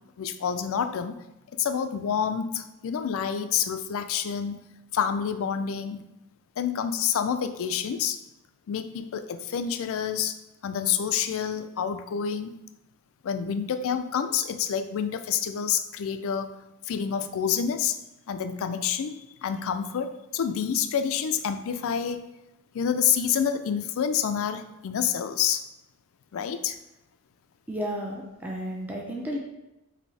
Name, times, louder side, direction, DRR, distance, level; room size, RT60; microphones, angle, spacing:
voice 1, 0.2-1.2 1.5-4.6 4.9-6.0 6.6-8.2 8.7-10.4 10.6-12.6 13.2-16.5 16.9-18.0 18.3-22.2 22.7-25.6 26.3-26.8, left 8 dB, 65° left, 9 dB, 0.4 m, -28 dB
voice 2, 27.7-29.4, equal, 10° right, -2 dB, 0.5 m, -32 dB
5.2 x 2.7 x 3.2 m, 0.93 s
head